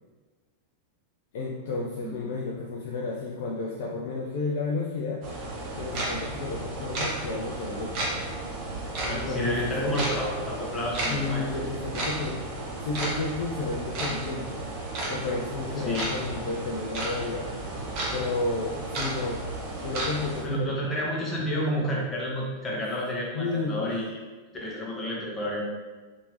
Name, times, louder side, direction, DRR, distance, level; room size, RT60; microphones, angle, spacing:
voice 1, 1.3-5.2 5.8-8.2 9.1-10.0 11.1-14.6 15.1-17.5 18.1-20.7 23.3-23.9, left 3 dB, 55° left, -2 dB, 0.3 m, -32 dB
sound 1, 5.2-20.4, right 2 dB, 40° right, 0.8 m, -33 dB
voice 2, 9.0-11.5 15.8-16.1 20.4-24.2 24.6-25.6, equal, 20° left, -4 dB, 0.9 m, -30 dB
2.8 x 2.6 x 3.1 m, 1.3 s
figure-of-eight pair, 90°, 0 cm